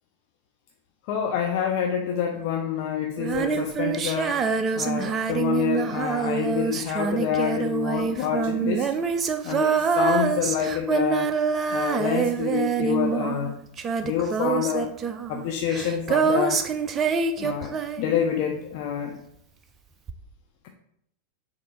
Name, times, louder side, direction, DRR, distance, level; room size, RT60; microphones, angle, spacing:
voice 1, 1.1-4.4 4.7-8.9 9.4-11.3 11.7-13.5 14.0-14.9 15.3-16.6 17.4-19.2, left 8 dB, 45° left, 2 dB, 0.4 m, -27 dB
Female singing, 3.2-18.5 20.1-20.2, right 6 dB, 25° right, 0.3 m, -26 dB
6.4 x 2.5 x 2.9 m, 0.75 s
figure-of-eight pair, 90°, 0 cm